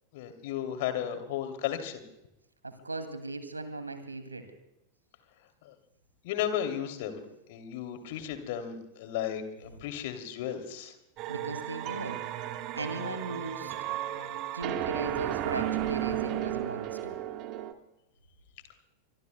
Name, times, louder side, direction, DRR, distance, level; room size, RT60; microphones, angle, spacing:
voice 1, 0.1-2.0 5.6-5.7 6.2-7.2 7.5-10.9, left 10 dB, 50° left, 8 dB, 2.8 m, -34 dB
voice 2, 2.6-4.4 11.3-12.2 12.8-13.7 14.5-17.2, right 2 dB, 80° right, 9 dB, 2.3 m, -37 dB
sound 1, 11.2-17.7, right 12 dB, 40° right, 1.4 m, -34 dB
24.5 x 24.0 x 2.2 m, 0.89 s
figure-of-eight pair, 90°, 0 cm